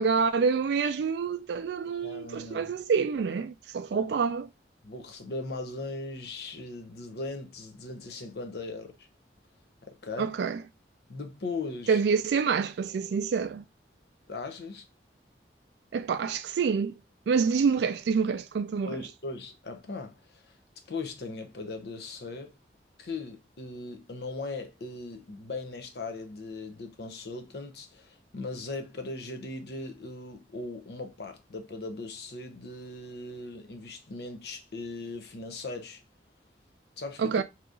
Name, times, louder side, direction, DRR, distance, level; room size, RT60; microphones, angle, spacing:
voice 1, 0.0-4.5 10.2-10.6 11.9-13.6 15.9-17.0 17.3-19.0 37.2-37.4, right 5 dB, 75° right, 0.3 m, -27 dB
voice 2, 2.0-2.8 3.9-4.2 4.8-9.1 9.8-10.3 11.1-12.0 14.3-14.8 18.8-20.5 20.9-22.6 23.0-36.0 37.0-37.4, left 3 dB, 65° left, 0.6 m, -39 dB
2.9 x 2.5 x 3.6 m
head